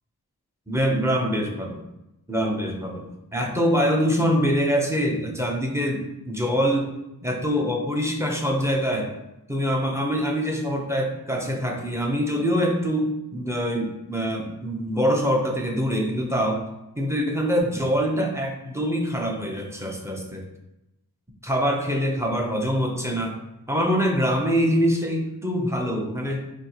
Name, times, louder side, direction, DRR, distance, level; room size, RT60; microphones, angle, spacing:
voice 1, 0.7-1.8 2.3-6.9 7.2-9.1 9.5-16.6 17.0-20.4 21.4-23.4 23.7-26.4, equal, 5° right, 1 dB, 0.7 m, -24 dB
4.3 x 2.8 x 2.9 m, 0.91 s
wide cardioid pair, 50°, 39 cm